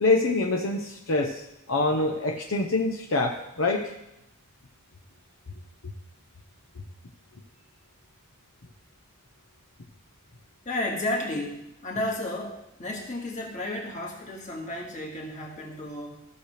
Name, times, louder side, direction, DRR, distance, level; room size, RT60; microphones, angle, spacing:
voice 1, 0.0-3.9, left 2 dB, 70° left, 2 dB, 0.8 m, -25 dB
voice 2, 10.7-16.2, left 1 dB, 35° left, -2 dB, 1.9 m, -32 dB
14.5 x 6.5 x 3.3 m, 0.85 s
head